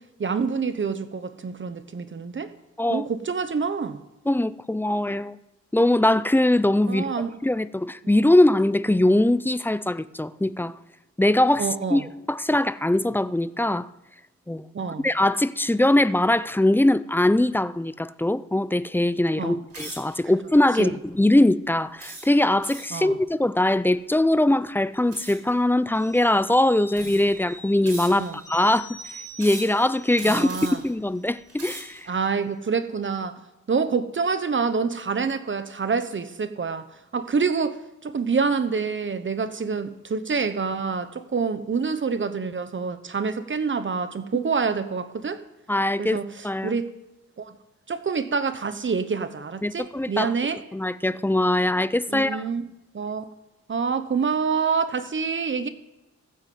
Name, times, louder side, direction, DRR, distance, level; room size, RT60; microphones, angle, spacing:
voice 1, 0.2-2.5 2.9-4.0 6.9-7.3 11.6-12.1 14.7-15.1 19.4-19.6 20.8-21.0 22.9-23.2 28.2-28.4 30.2-30.8 32.1-33.4 33.7-36.8 37.1-45.4 46.0-46.9 47.4-47.6 47.9-50.6 52.1-52.6 52.9-53.3 53.7-55.7, right 5 dB, 40° right, 1.0 m, -27 dB
voice 2, 4.3-5.4 5.7-7.1 7.4-10.7 11.2-12.0 12.3-13.9 14.5-14.7 15.0-28.9 29.4-30.5 30.8-32.1 45.7-46.2 46.4-46.7 49.6-50.3 50.7-52.4, left 1 dB, 5° left, 0.5 m, -21 dB
sound 1, 19.7-20.2 20.8-21.1 22.0-23.0 25.1-25.5 26.3-26.4 26.9-27.4 27.8-28.4 29.4-29.8 30.1-30.9 31.4-32.0, right 2 dB, 60° right, 7.4 m, -39 dB
sound 2, 25.9-31.1 31.4-31.5, equal, 25° right, 5.0 m, -45 dB
15.5 x 9.3 x 7.7 m
wide cardioid pair, 110°, 29 cm